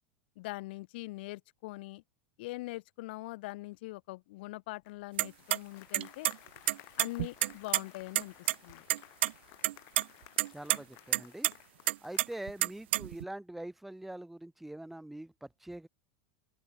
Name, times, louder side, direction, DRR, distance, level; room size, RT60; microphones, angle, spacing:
voice 1, 0.4-2.0 2.4-6.3 7.0-8.9, left 21 dB, 65° left, 4.2 m, -42 dB
Applause, 4.8-12.8, left 28 dB, 45° left, 2.9 m, -57 dB
sound 1, 5.2-5.6 5.9-6.4 6.7-7.8 8.2-8.3 8.5-8.6 8.9-9.3 9.6-10.0 10.4-10.8 11.1-11.5 11.9-13.2, right 16 dB, 80° right, 0.9 m, -28 dB
voice 2, 10.5-11.5 12.0-15.9, right 1 dB, 5° right, 1.5 m, -44 dB
open air
supercardioid pair, 155°, 6 cm